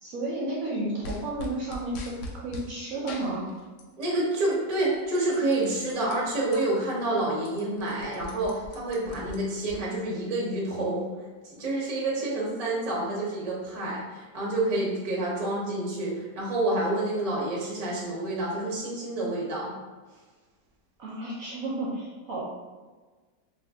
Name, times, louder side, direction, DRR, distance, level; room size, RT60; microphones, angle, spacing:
voice 1, 0.0-3.5 21.0-22.4, right 2 dB, 65° right, -5 dB, 0.9 m, -32 dB
sound 1, 1.0-2.7 3.1-4.2 4.5-6.6 7.0-7.1 7.3-9.8, left 2 dB, 80° left, 0.6 m, -42 dB
voice 2, 4.0-11.0 11.4-19.7, right 2 dB, 35° right, -4 dB, 0.5 m, -28 dB
2.7 x 2.5 x 3.5 m, 1.3 s
omnidirectional pair, 1.8 m